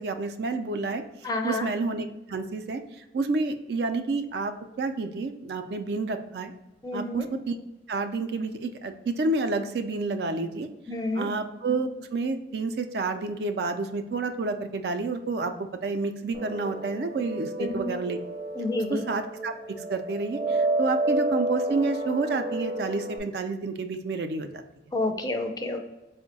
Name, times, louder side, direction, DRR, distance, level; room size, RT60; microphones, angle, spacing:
voice 1, 0.0-6.5 6.9-7.6 7.9-10.7 11.1-18.2 18.9-19.5 19.9-24.5, right 3 dB, 60° right, 8 dB, 0.4 m, -29 dB
voice 2, 1.2-1.6 6.8-7.3 10.9-11.3 17.6-18.0 18.5-19.0 24.9-25.8, left 2 dB, 20° left, 4 dB, 0.4 m, -29 dB
sound 1, 16.3-23.2, right 1 dB, 20° right, 0.7 m, -30 dB
4.4 x 2.1 x 3.9 m, 1.0 s
head